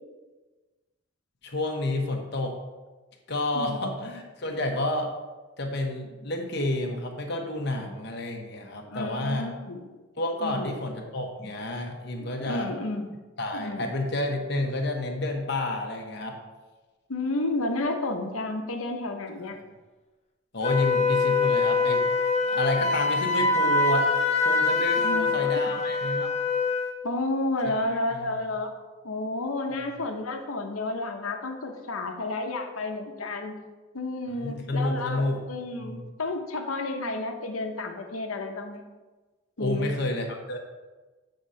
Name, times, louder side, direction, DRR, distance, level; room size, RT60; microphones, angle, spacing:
voice 1, 1.4-2.6 3.3-5.1 5.6-9.5 10.1-12.7 13.4-16.4 19.5-19.6 20.5-22.1 22.4-24.1 24.4-26.3 28.1-28.4 34.3-36.0 39.6-40.6, left 1 dB, 50° left, 2 dB, 1.1 m, -30 dB
voice 2, 3.5-4.0 8.9-9.8 10.4-10.8 12.4-13.1 13.5-13.9 17.1-19.6 25.0-25.7 27.0-28.7 29.0-33.6 33.9-35.2 35.5-38.8 39.6-39.9, left 2 dB, 90° left, 4 dB, 0.9 m, -31 dB
Wind instrument woodwind instrument, 20.6-27.0, left 4 dB, 30° left, 0.6 m, -24 dB
8.0 x 3.8 x 5.6 m, 1.2 s
head